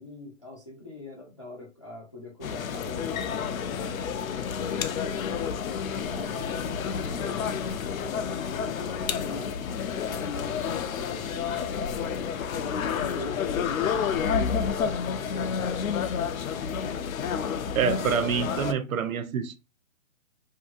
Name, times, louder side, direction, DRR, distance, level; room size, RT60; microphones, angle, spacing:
voice 1, 0.0-5.1 6.1-11.6 12.6-15.9, left 2 dB, 25° left, 0.3 m, -44 dB
sound 1, 2.4-18.7, left 7 dB, 85° left, 0.5 m, -30 dB
voice 2, 17.7-19.6, right 7 dB, 85° right, 0.6 m, -27 dB
2.7 x 2.5 x 2.5 m
hypercardioid pair, 150°, 41 cm